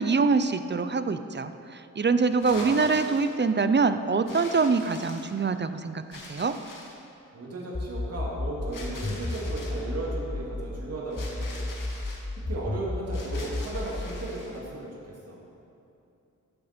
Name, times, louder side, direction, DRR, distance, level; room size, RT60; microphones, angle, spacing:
voice 1, 0.0-6.5, right 4 dB, 35° right, 10 dB, 0.6 m, -25 dB
sound 1, 2.3-3.3 4.2-5.5 6.1-7.1 8.7-9.9 11.1-12.2 13.1-14.6, left 2 dB, 80° left, 2.2 m, -44 dB
voice 2, 2.5-2.9 7.3-11.7 12.5-15.4, right 2 dB, 50° right, -5 dB, 2.6 m, -35 dB
sound 2, 7.7-10.8 11.2-14.2, left 2 dB, 10° left, 0.5 m, -32 dB
14.0 x 12.0 x 4.4 m, 2.7 s
wide cardioid pair, 90°, 32 cm